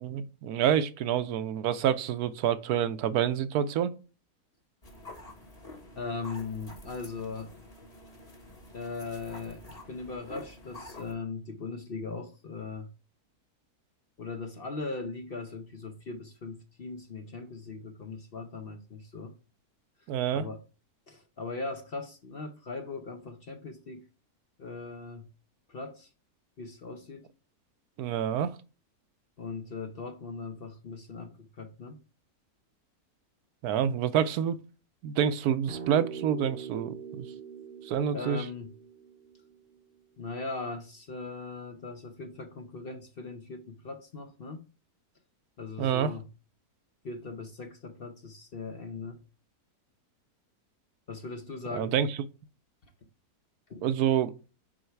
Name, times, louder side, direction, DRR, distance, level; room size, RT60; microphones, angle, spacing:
voice 1, 0.0-3.9 20.1-20.5 28.0-28.6 33.6-34.6 35.0-37.3 37.8-38.5 45.8-46.1 51.7-52.2 53.8-54.3, right 9 dB, 80° right, 1.1 m, -27 dB
sound 1, 4.8-11.1, left 1 dB, 25° left, 1.5 m, -48 dB
voice 2, 6.0-7.6 8.7-12.9 14.2-19.3 20.3-20.6 21.1-24.0 24.6-25.3 25.7-26.1 26.6-27.3 29.4-32.0 38.1-38.8 40.2-44.6 45.6-46.3 47.0-49.2 51.1-52.0 53.7-53.8, left 4 dB, 50° left, 0.8 m, -39 dB
sound 2, 35.7-40.2, right 7 dB, 45° right, 0.7 m, -43 dB
6.3 x 4.9 x 4.5 m
omnidirectional pair, 1.6 m